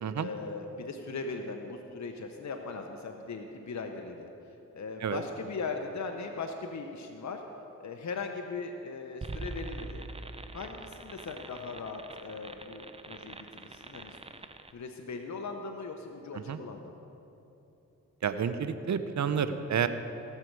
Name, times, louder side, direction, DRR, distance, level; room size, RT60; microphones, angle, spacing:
voice 1, 0.2-4.3 4.7-7.4 7.8-10.0 10.5-14.2 14.7-17.1, left 4 dB, 55° left, 4 dB, 0.9 m, -39 dB
sound 1, 9.2-14.7, right 2 dB, 20° right, 0.7 m, -43 dB
voice 2, 18.2-19.9, right 7 dB, 60° right, 11 dB, 0.7 m, -30 dB
17.5 x 6.7 x 4.7 m, 2.9 s
supercardioid pair, 40°, 33 cm